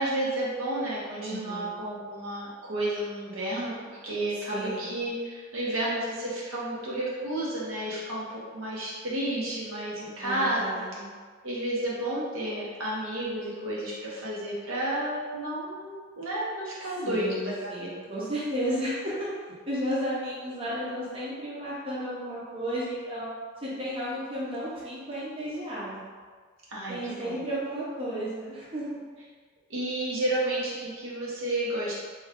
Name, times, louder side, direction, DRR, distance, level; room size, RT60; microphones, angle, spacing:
voice 1, 0.0-10.8 11.4-17.9 26.7-27.4 29.7-31.9, right 1 dB, 80° right, -6 dB, 0.9 m, -31 dB
voice 2, 1.2-1.8 4.4-5.0 10.2-11.1 17.0-19.3 19.7-23.3 23.6-26.1 26.9-29.0, equal, 30° right, -7 dB, 0.6 m, -33 dB
3.1 x 2.2 x 3.5 m, 1.5 s
head